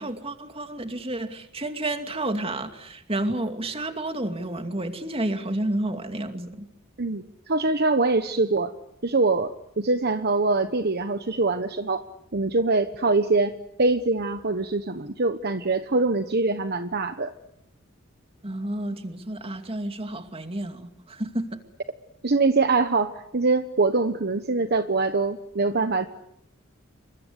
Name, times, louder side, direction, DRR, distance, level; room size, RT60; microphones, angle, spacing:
voice 1, 0.0-6.7 18.4-21.6, right 1 dB, 25° right, 2.6 m, -30 dB
voice 2, 7.0-8.7 9.0-12.0 12.3-13.5 13.8-17.3 22.2-26.1, right 3 dB, 45° right, 1.2 m, -23 dB
29.0 x 24.5 x 8.3 m
head